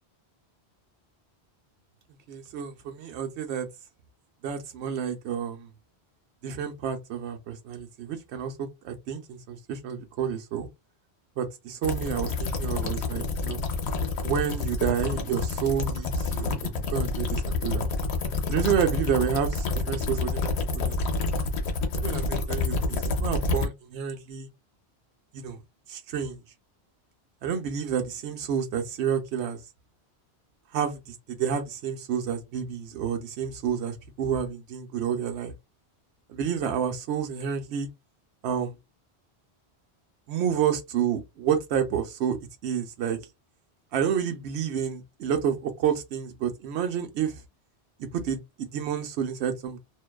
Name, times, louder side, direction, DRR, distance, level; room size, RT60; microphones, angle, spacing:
voice 1, 2.3-3.7 4.4-5.7 6.4-10.7 11.4-13.6 14.2-17.9 18.5-21.0 21.9-24.5 25.3-25.6 25.9-26.4 27.4-29.6 30.7-35.5 36.3-37.9 38.4-38.7 40.3-42.4 42.6-43.2 43.9-47.3 48.1-49.8, right 8 dB, 85° right, 0.9 m, -29 dB
sound 1, 11.8-23.7, left 3 dB, 80° left, 0.9 m, -28 dB
2.5 x 2.2 x 2.2 m
omnidirectional pair, 1.1 m